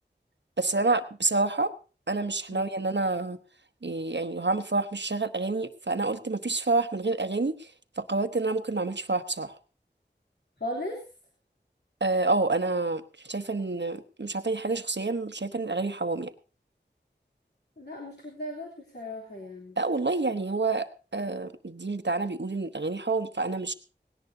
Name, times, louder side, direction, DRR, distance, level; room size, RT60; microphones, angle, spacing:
voice 1, 0.6-1.7 2.1-3.4 3.8-7.7 8.0-9.6 12.0-16.3 19.8-23.7, right 3 dB, 70° right, 10 dB, 1.1 m, -28 dB
voice 2, 10.6-11.0 17.8-19.8, left 1 dB, 60° left, -3 dB, 3.3 m, -37 dB
18.5 x 18.0 x 2.8 m, 0.34 s
wide cardioid pair, 40°, 19 cm